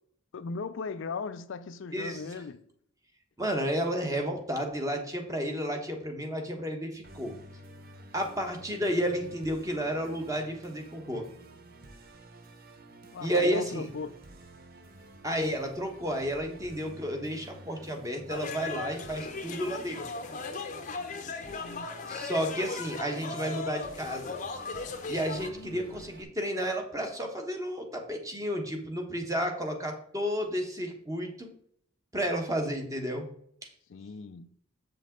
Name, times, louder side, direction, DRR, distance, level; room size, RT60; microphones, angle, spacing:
voice 1, 0.3-2.6 13.1-14.2 21.5-22.0 25.3-26.1 33.9-34.5, left 4 dB, 60° left, 0.4 m, -38 dB
voice 2, 1.9-2.3 3.4-7.3 8.1-11.3 13.2-13.9 15.2-20.0 22.1-24.4 25.1-31.5 32.1-33.3, equal, 15° right, 1.1 m, -32 dB
Musical instrument, 7.0-26.2, right 2 dB, 45° right, 0.7 m, -51 dB
sound 1, 18.3-25.5, left 4 dB, 35° left, 0.7 m, -37 dB
7.6 x 5.3 x 3.8 m
head